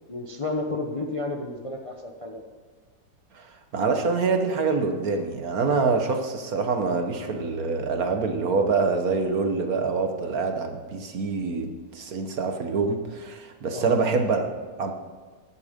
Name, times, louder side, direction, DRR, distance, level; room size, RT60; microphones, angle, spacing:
voice 1, 0.1-2.4 13.7-14.0, left 2 dB, 25° left, 2 dB, 0.7 m, -31 dB
voice 2, 3.7-14.5 14.8-14.9, right 4 dB, 60° right, 6 dB, 1.5 m, -25 dB
15.5 x 11.0 x 5.2 m, 1.5 s
omnidirectional pair, 1.9 m